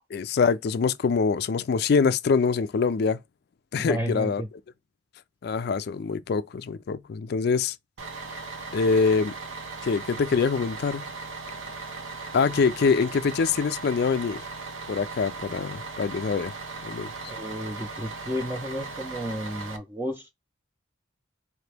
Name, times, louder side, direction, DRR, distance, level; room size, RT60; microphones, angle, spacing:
voice 1, 0.1-3.2 3.7-4.4 5.4-7.8 8.7-9.3 9.8-11.1 12.3-14.4 14.9-16.5 16.8-17.1, left 5 dB, 55° left, 0.3 m, -24 dB
voice 2, 3.7-4.5 17.3-20.3, equal, 10° right, 0.5 m, -32 dB
Bus, 8.0-19.8, right 3 dB, 85° right, 0.9 m, -38 dB
4.3 x 2.9 x 3.3 m
head